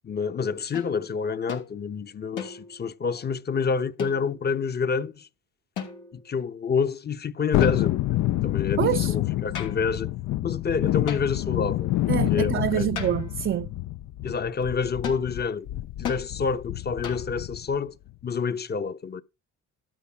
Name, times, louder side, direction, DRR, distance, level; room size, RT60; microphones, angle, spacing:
voice 1, 0.0-5.3 6.1-8.0 8.4-10.1 10.4-11.9 12.3-12.9 14.2-15.7 16.0-17.9 18.2-19.2, left 5 dB, 35° left, 0.9 m, -28 dB
sound 1, 0.7-0.9 1.5-1.7 2.4-2.9 4.0-4.5 5.8-6.3 7.6-8.1 9.5-9.9 11.1-11.5 13.0-13.4 15.0-15.3 16.0-16.3 17.0-17.4, left 8 dB, 90° left, 3.1 m, -37 dB
Thunderstorm, 7.5-17.8 18.1-18.2, left 15 dB, 70° left, 0.5 m, -28 dB
voice 2, 8.8-9.1 12.1-13.7, right 11 dB, 40° right, 0.5 m, -26 dB
12.5 x 5.3 x 5.9 m
cardioid pair, 90°, 30 cm